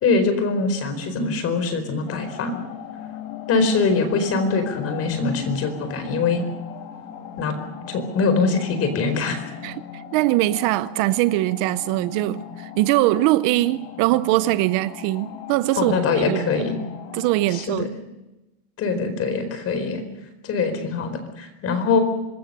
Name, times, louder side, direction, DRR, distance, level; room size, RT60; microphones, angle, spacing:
voice 1, 0.0-2.6 3.5-6.4 7.4-7.5 7.9-9.4 15.8-16.8 17.5-17.9 18.8-20.0 20.4-22.0, left 4 dB, 35° left, 4.5 m, -23 dB
sound 1, 2.1-17.6, left 8 dB, 50° left, 3.5 m, -38 dB
voice 2, 9.6-16.7 17.1-17.9, right 17 dB, 50° right, 0.7 m, -22 dB
26.0 x 20.5 x 6.7 m
cardioid pair, 165°, 43 cm